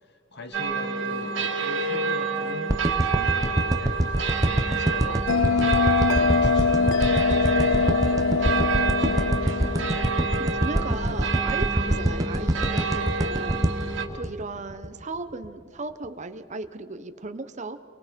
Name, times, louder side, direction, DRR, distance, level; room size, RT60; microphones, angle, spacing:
voice 1, 0.0-9.3 9.6-9.7 10.8-11.3, left 1 dB, 60° left, 7 dB, 1.7 m, -41 dB
sound 1, 0.5-14.1, right 4 dB, 65° right, 2.6 m, -28 dB
sound 2, 2.7-15.0 15.4-15.5, right 1 dB, 20° right, 1.0 m, -25 dB
Bell, 5.3-10.4, left 5 dB, 75° left, 0.5 m, -23 dB
voice 2, 10.4-17.8, right 3 dB, 40° right, 9 dB, 1.2 m, -36 dB
29.5 x 23.5 x 5.4 m, 2.3 s
head